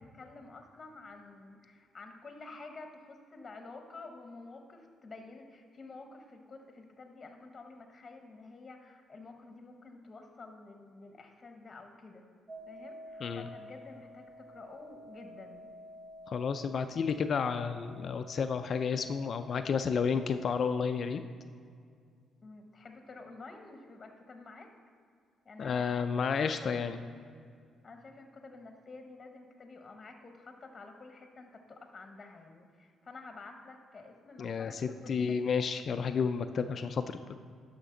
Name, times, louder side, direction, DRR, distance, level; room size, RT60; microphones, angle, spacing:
voice 1, 0.0-12.2 12.7-15.7 22.4-24.7 25.4-27.0 27.8-35.5, left 3 dB, 30° left, 5 dB, 1.0 m, -50 dB
sound 1, 12.5-21.1, equal, 40° right, 1.1 m, -51 dB
voice 2, 16.3-21.2 25.6-27.0 34.4-37.3, left 6 dB, 55° left, 9 dB, 0.3 m, -31 dB
11.0 x 5.8 x 3.8 m, 2.1 s
cardioid pair, 90°, 0 cm